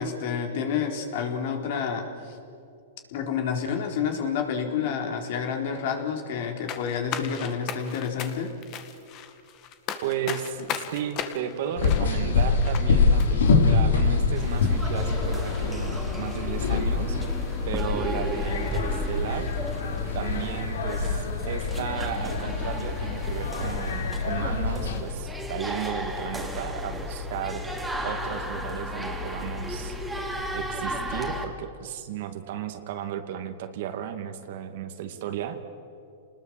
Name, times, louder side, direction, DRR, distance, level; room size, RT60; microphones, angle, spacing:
voice 1, 0.0-2.4 3.1-8.5, left 6 dB, 60° left, 4 dB, 3.9 m, -29 dB
sound 1, 6.7-12.9 13.2-13.3, left 9 dB, 35° left, 2.0 m, -36 dB
voice 2, 10.0-17.2 17.7-19.5 20.1-27.6 28.0-30.0 30.5-35.6, right 9 dB, 60° right, 8 dB, 2.3 m, -34 dB
sound 2, 11.8-25.0, left 4 dB, 85° left, 3.3 m, -25 dB
sound 3, 14.4-31.5, left 1 dB, 5° right, 2.8 m, -34 dB
29.0 x 20.0 x 7.7 m, 2.6 s
hypercardioid pair, 140°, 0 cm